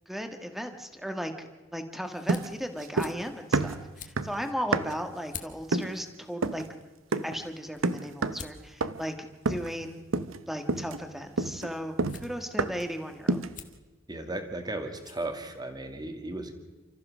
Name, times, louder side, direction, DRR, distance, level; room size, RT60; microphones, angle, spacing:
voice 1, 0.1-6.6 7.2-10.0 10.5-13.4, equal, ahead, 6 dB, 1.6 m, -36 dB
sound 1, 2.1-16.0, left 7 dB, 40° left, 1.5 m, -52 dB
sound 2, 2.3-3.3 3.5-5.1 5.7-6.0 6.4-6.7 7.1-7.4 7.8-8.5 8.8-9.1 9.5-9.8 10.1-10.4 10.7-12.9 13.3-13.6, right 3 dB, 85° right, 0.8 m, -30 dB
voice 2, 14.1-16.6, right 2 dB, 20° right, 6 dB, 2.1 m, -35 dB
29.5 x 14.0 x 6.2 m, 1.3 s
head